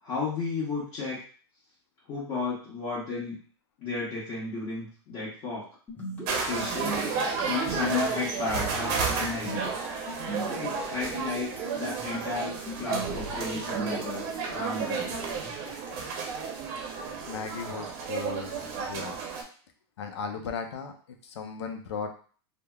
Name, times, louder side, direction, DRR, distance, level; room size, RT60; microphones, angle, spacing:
voice 1, 0.0-1.2 2.1-3.4 3.8-5.7 6.3-7.0 7.4-9.6 10.6-11.5 11.8-12.5 12.8-15.1, left 4 dB, 40° left, -8 dB, 1.2 m, -33 dB
sound 1, 5.9-16.1, right 1 dB, 10° left, 0.9 m, -41 dB
sound 2, 6.3-19.4, right 5 dB, 50° right, 0.7 m, -32 dB
voice 2, 17.3-19.2 20.0-22.1, left 5 dB, 85° left, 5 dB, 0.6 m, -37 dB
3.2 x 2.1 x 2.3 m, 0.42 s
hypercardioid pair, 125°, 14 cm